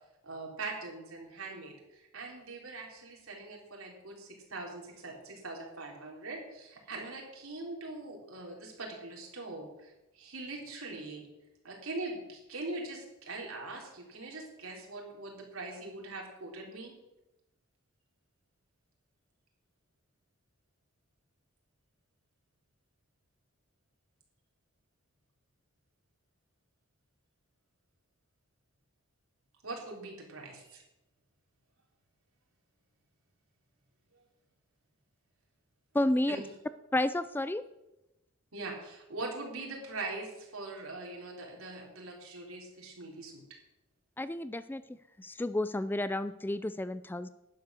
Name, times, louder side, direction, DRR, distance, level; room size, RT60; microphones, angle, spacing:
voice 1, 0.2-11.2 11.6-16.9 29.6-30.8 36.3-36.4 38.5-43.4, right 2 dB, 80° right, -1 dB, 3.8 m, -42 dB
voice 2, 35.9-36.4 36.9-37.6 44.2-44.8 45.2-47.3, left 1 dB, 10° left, 14 dB, 0.3 m, -31 dB
11.5 x 9.7 x 6.4 m, 0.95 s
head